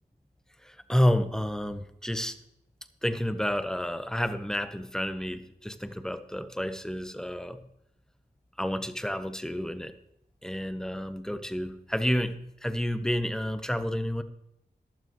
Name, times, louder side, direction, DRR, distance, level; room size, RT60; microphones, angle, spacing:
voice 1, 0.6-2.3 3.0-7.6 8.6-9.9 10.4-14.2, equal, 5° left, 10 dB, 0.9 m, -30 dB
14.5 x 12.0 x 3.1 m, 0.82 s
wide cardioid pair, 65°, 17 cm